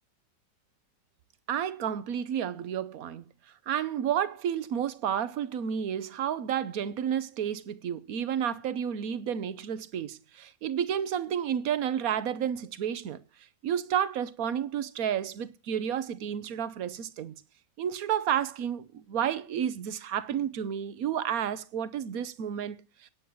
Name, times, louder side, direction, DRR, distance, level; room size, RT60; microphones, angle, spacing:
voice 1, 1.5-3.2 3.7-13.2 13.6-17.3 17.8-23.1, right 9 dB, 60° right, 1.2 m, -31 dB
9.4 x 9.1 x 7.7 m
omnidirectional pair, 1.9 m